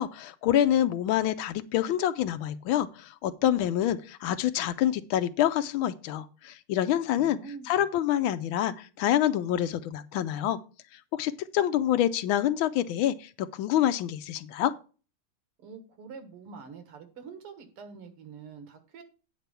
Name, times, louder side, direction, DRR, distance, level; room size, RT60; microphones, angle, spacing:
voice 1, 0.0-7.4 7.7-10.6 11.1-14.7, left 11 dB, 75° left, 11 dB, 1.3 m, -27 dB
voice 2, 6.9-7.7 15.6-19.0, right 5 dB, 85° right, 8 dB, 2.3 m, -45 dB
8.9 x 4.6 x 6.7 m, 0.36 s
omnidirectional pair, 2.4 m